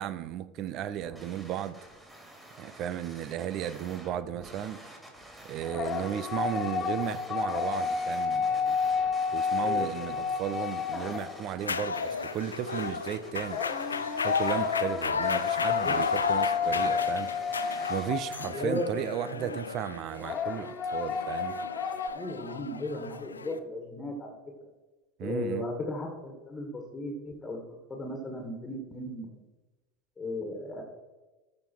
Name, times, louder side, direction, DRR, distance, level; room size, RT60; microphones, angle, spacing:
voice 1, 0.0-1.8 2.6-4.8 5.4-8.8 9.3-13.6 14.2-17.3 17.9-21.6 25.2-25.7, right 10 dB, 50° right, 0.6 m, -35 dB
sound 1, 0.9-18.1, right 1 dB, 10° right, 3.0 m, -49 dB
sound 2, 5.6-11.7 13.5-18.8 20.2-22.1, left 6 dB, 40° left, 0.9 m, -31 dB
voice 2, 9.6-10.2 15.5-16.0 16.5-16.6 18.5-19.6 22.1-24.4 25.2-27.6 27.9-29.4 30.2-30.8, left 1 dB, 20° left, 1.8 m, -36 dB
sound 3, 11.6-23.6, left 5 dB, 85° left, 0.4 m, -33 dB
14.0 x 5.4 x 4.6 m
figure-of-eight pair, 75°, 0 cm